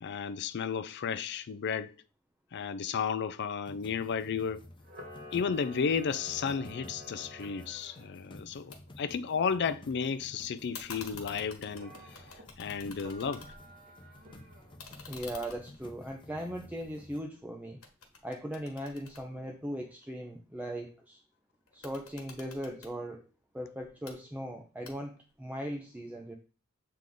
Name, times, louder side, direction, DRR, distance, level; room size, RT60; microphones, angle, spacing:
voice 1, 0.0-1.9 2.5-4.7 5.3-12.2 12.6-13.5, left 6 dB, 55° left, 0.4 m, -33 dB
sound 1, 3.7-17.2, left 1 dB, 25° left, 0.8 m, -52 dB
Camera, 4.8-8.1 11.7-12.4 13.0-14.8, equal, 45° right, 1.3 m, -50 dB
sound 2, 8.7-8.8 9.1-9.9 10.7-13.8 14.1-17.4 17.8-20.0 21.7-22.9 23.8-24.2 24.8-25.3, left 5 dB, 75° left, 1.4 m, -50 dB
voice 2, 15.1-17.8 18.2-21.2 21.7-23.3 23.5-26.4, equal, 10° right, 0.6 m, -39 dB
7.6 x 3.5 x 3.8 m
head